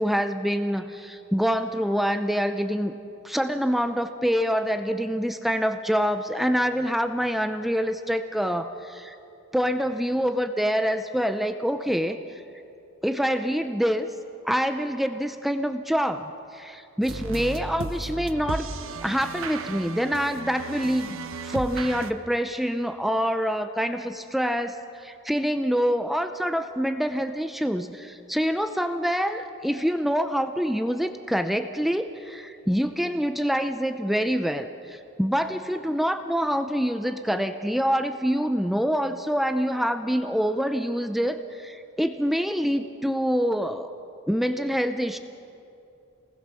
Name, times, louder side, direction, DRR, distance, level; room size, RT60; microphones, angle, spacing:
voice 1, 0.0-2.9 3.2-9.2 9.5-12.4 13.0-14.1 14.4-18.7 19.0-21.1 21.4-43.9 44.3-45.2, equal, ahead, 8 dB, 0.6 m, -26 dB
sound 1, 17.0-22.1, right 3 dB, 70° right, 1.0 m, -35 dB
28.0 x 20.0 x 6.3 m, 2.6 s
head